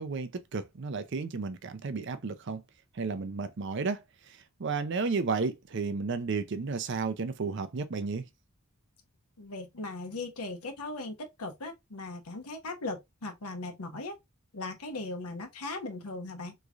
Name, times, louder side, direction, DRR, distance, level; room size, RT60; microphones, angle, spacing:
voice 1, 0.0-2.6 2.9-4.0 4.6-8.2, right 4 dB, 55° right, 0.5 m, -32 dB
voice 2, 9.4-14.2 14.5-16.5, left 2 dB, 90° left, 1.0 m, -38 dB
3.6 x 3.1 x 2.4 m
head